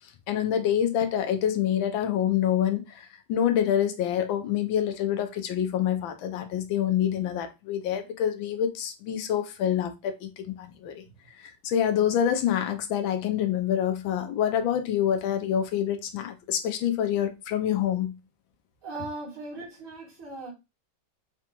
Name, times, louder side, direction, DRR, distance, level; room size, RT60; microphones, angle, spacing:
voice 1, 0.3-11.0 11.4-18.1, left 10 dB, 75° left, 1.3 m, -26 dB
voice 2, 18.8-20.5, right 2 dB, 85° right, 2.5 m, -38 dB
5.0 x 2.2 x 2.9 m
omnidirectional pair, 2.2 m